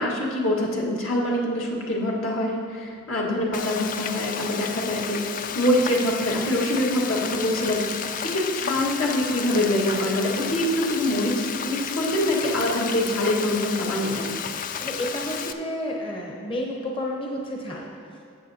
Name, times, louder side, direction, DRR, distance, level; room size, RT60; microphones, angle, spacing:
voice 1, 0.0-5.3 5.6-14.3, left 1 dB, 75° left, -3 dB, 1.6 m, -25 dB
Frying (food), 3.5-15.5, left 7 dB, 40° left, 0.3 m, -32 dB
voice 2, 14.8-18.2, left 1 dB, 25° left, -1 dB, 0.7 m, -31 dB
13.0 x 8.1 x 2.8 m, 2.3 s
head